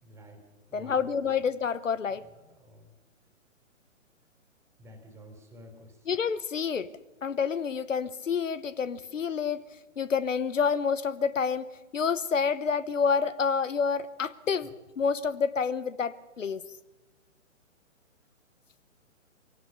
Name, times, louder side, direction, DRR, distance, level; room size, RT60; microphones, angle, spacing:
voice 1, 0.0-0.4 0.7-1.4 2.6-2.8 4.8-5.9, equal, 5° right, 6 dB, 3.3 m, -50 dB
voice 2, 0.7-2.2 6.1-6.9 7.2-9.6 10.0-11.7 11.9-16.7, left 6 dB, 70° left, 17 dB, 1.0 m, -28 dB
23.5 x 17.5 x 6.8 m, 1.1 s
figure-of-eight pair, 135°, 39 cm